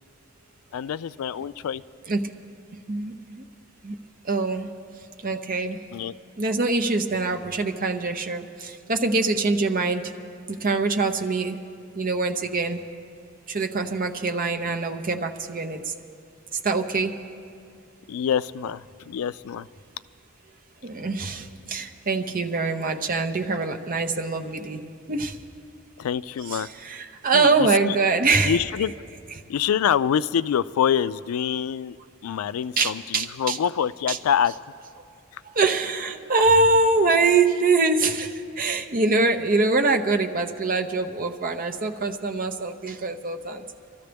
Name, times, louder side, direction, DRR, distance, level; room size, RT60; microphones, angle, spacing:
voice 1, 0.7-1.8 5.9-6.1 18.1-19.7 26.0-26.7 27.3-28.0 28.4-28.9 29.5-32.0 32.2-34.5 35.3-35.4, left 8 dB, 80° left, 16 dB, 0.3 m, -25 dB
voice 2, 2.9-3.4 3.8-3.9 4.2-4.7 5.2-5.8 6.4-10.1 10.5-11.6 11.9-12.8 13.5-15.9 16.6-17.2 20.8-25.4 26.5-28.6 32.8-33.6 34.1-34.2 35.4-43.6, right 3 dB, 40° right, 5 dB, 0.7 m, -24 dB
25.5 x 13.5 x 3.4 m, 2.4 s
head